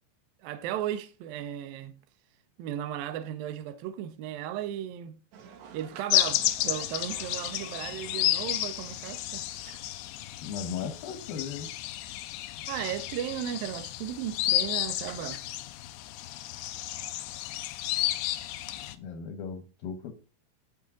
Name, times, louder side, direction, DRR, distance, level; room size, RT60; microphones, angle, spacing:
voice 1, 0.4-1.9 2.6-5.2 5.7-9.8 12.7-15.4, right 11 dB, 85° right, 2.0 m, -35 dB
sound 1, 5.3-10.4, right 7 dB, 65° right, 3.4 m, -51 dB
sound 2, 6.1-18.9, left 14 dB, 90° left, 2.5 m, -32 dB
voice 2, 10.4-11.7 18.7-20.1, left 7 dB, 70° left, 2.4 m, -37 dB
16.5 x 5.6 x 3.8 m
omnidirectional pair, 5.9 m